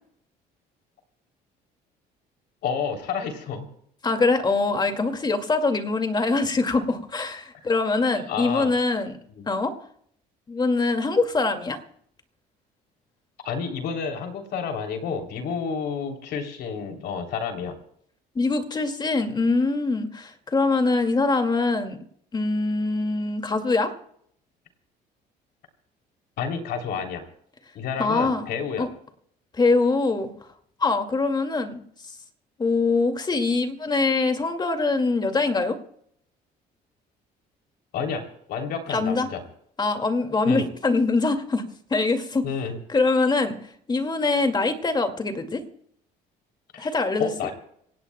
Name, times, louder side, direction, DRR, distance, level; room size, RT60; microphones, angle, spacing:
voice 1, 2.6-3.7 8.3-8.7 9.3-9.5 13.4-17.8 26.4-27.3 27.7-28.9 37.9-39.4 40.4-40.7 42.4-42.8 46.7-46.9 47.2-47.5, left 6 dB, 75° left, 4 dB, 3.2 m, -30 dB
voice 2, 4.0-9.1 9.5-9.7 10.5-11.8 18.4-22.0 22.3-23.9 28.0-28.5 28.8-28.9 29.5-30.3 30.8-31.8 32.6-35.8 38.9-39.3 39.8-41.6 41.9-42.5 42.9-43.6 43.9-45.6 46.8-47.3, left 3 dB, 25° left, 6 dB, 2.2 m, -23 dB
26.5 x 17.5 x 2.2 m, 0.66 s
cardioid pair, 110°, 17 cm